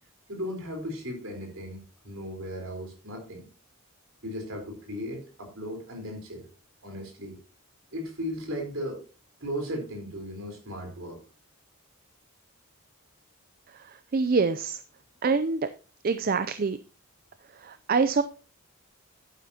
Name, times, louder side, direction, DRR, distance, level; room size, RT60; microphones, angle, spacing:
voice 1, 0.3-3.5 4.2-6.5 6.8-7.4 7.9-9.0 9.4-11.2, equal, 60° right, 3 dB, 4.1 m, -36 dB
voice 2, 14.1-14.8 15.2-15.6 16.0-16.8 17.6-18.2, right 4 dB, 40° right, 12 dB, 0.4 m, -25 dB
11.0 x 9.3 x 2.8 m, 0.34 s
head